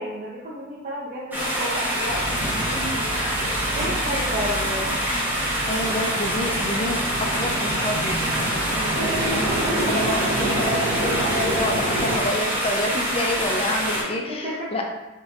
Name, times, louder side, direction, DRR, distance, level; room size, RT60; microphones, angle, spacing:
voice 1, 0.0-3.2 3.8-5.0 10.4-10.5 14.3-14.7, equal, 40° right, -6 dB, 0.5 m, -32 dB
sound 1, 1.3-14.0, equal, 10° right, 0.8 m, -26 dB
sound 2, 2.0-12.2, right 1 dB, 85° right, 0.6 m, -29 dB
voice 2, 5.7-9.1 9.3-14.9, left 1 dB, 30° left, 1 dB, 0.4 m, -29 dB
5.4 x 2.6 x 2.4 m, 1.1 s
head